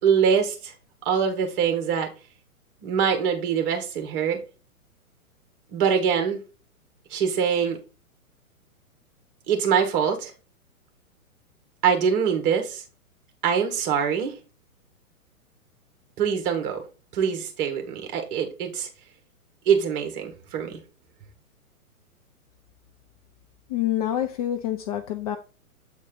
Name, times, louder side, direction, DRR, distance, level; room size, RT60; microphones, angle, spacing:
voice 1, 0.0-0.7 1.1-2.1 2.8-4.4 5.7-6.4 7.1-7.8 9.5-10.3 11.8-12.8 13.4-14.4 16.2-16.9 17.1-18.9 19.7-20.8, right 7 dB, 35° right, 1.9 m, -23 dB
voice 2, 23.7-25.4, left 11 dB, 25° left, 0.5 m, -27 dB
8.1 x 4.2 x 3.9 m
figure-of-eight pair, 120°, 43 cm